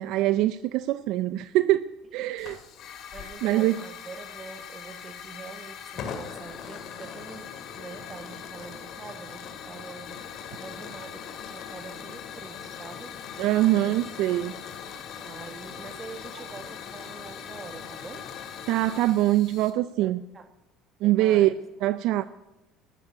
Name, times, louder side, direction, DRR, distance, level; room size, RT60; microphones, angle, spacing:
voice 1, 0.0-2.6 3.4-3.8 13.4-14.5 18.7-20.2 21.0-21.5 21.8-22.2, right 15 dB, 70° right, 0.5 m, -23 dB
Hiss / Fire, 2.4-19.7, left 8 dB, 55° left, 2.4 m, -40 dB
voice 2, 3.1-7.5 7.8-10.2 10.6-13.2 13.8-14.0 15.2-18.3 20.0-20.5 21.0-21.5, right 4 dB, 25° right, 2.0 m, -44 dB
13.0 x 11.0 x 9.7 m
cardioid pair, 120°, 0 cm